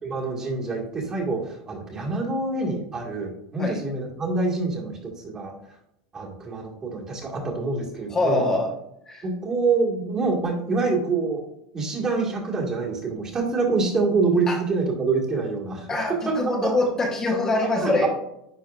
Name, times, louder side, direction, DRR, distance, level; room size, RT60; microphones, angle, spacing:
voice 1, 0.0-5.5 6.1-8.4 9.2-11.4 11.7-15.9 16.3-16.7 17.8-18.1, right 3 dB, 25° right, -1 dB, 1.8 m, -26 dB
voice 2, 8.1-8.7 9.1-9.2 14.5-14.6 15.9-18.1, left 2 dB, 25° left, 1 dB, 1.2 m, -24 dB
10.0 x 4.2 x 2.5 m, 0.81 s
supercardioid pair, 125°, 2 cm